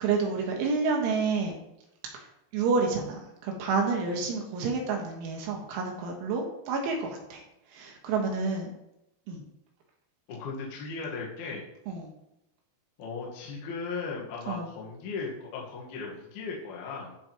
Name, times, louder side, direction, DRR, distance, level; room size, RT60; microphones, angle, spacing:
voice 1, 0.0-1.5 2.1-2.2 2.5-7.4 7.7-8.7 9.3-9.4 11.9-12.1 14.5-14.7, right 4 dB, 85° right, 1 dB, 3.9 m, -29 dB
voice 2, 10.3-11.6 13.0-17.1, left 4 dB, 65° left, -4 dB, 3.1 m, -37 dB
13.5 x 5.0 x 3.0 m, 0.86 s
omnidirectional pair, 5.3 m